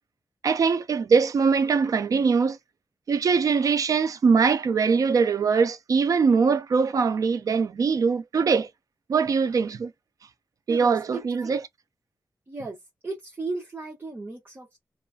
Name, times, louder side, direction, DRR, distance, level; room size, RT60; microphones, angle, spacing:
voice 1, 0.4-2.6 3.1-8.7 9.1-9.9 10.7-11.6, right 5 dB, 65° right, 0.5 m, -22 dB
voice 2, 10.7-11.6 12.5-12.8 13.0-14.8, right 3 dB, 35° right, 1.3 m, -35 dB
3.0 x 2.4 x 2.3 m
wide cardioid pair, 100°, 6 cm